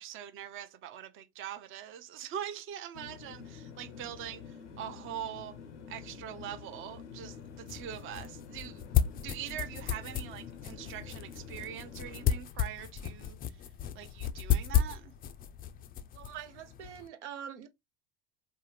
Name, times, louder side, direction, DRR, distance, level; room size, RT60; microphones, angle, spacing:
voice 1, 0.0-5.6 5.9-8.8 9.2-13.4 13.9-15.1, right 10 dB, 40° right, 0.5 m, -43 dB
sound 1, 2.9-12.4, left 6 dB, 90° left, 0.6 m, -48 dB
sound 2, 7.2-17.1, left 9 dB, 25° left, 0.4 m, -34 dB
voice 2, 16.1-17.7, right 9 dB, 85° right, 0.7 m, -44 dB
3.5 x 2.0 x 3.0 m
hypercardioid pair, 75°, 34 cm